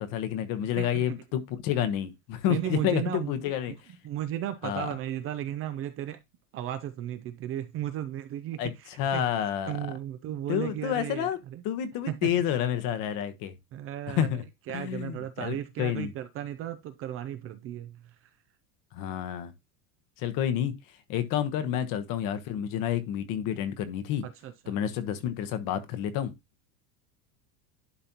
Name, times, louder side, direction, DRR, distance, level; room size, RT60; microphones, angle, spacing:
voice 1, 0.0-3.7 4.6-4.9 8.6-8.7 9.0-9.7 10.5-11.4 11.6-13.5 14.1-14.4 14.7-16.1 18.9-19.5 20.2-20.7 21.1-24.2 24.7-26.3, left 10 dB, 45° left, 1.1 m, -29 dB
voice 2, 2.5-3.3 3.7-3.8 4.0-6.2 6.5-9.2 9.7-11.6 12.1-12.3 13.7-14.3 14.7-18.1 21.6-21.8 24.2-24.8, right 11 dB, 30° right, 0.5 m, -35 dB
11.0 x 4.1 x 2.9 m
supercardioid pair, 150°, 45 cm